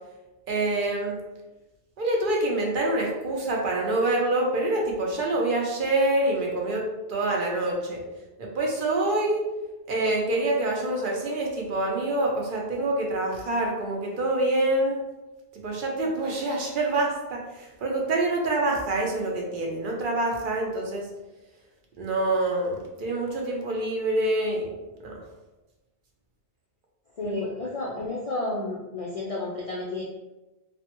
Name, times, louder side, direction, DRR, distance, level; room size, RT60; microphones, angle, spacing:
voice 1, 0.5-1.2 2.0-8.0 8.4-9.4 9.9-15.0 15.6-21.1 22.0-24.7 25.0-25.2 27.2-27.3, right 2 dB, 60° right, -1 dB, 0.7 m, -26 dB
voice 2, 27.2-30.0, left 2 dB, 55° left, -4 dB, 0.4 m, -31 dB
3.3 x 2.1 x 2.9 m, 1.1 s
omnidirectional pair, 1.1 m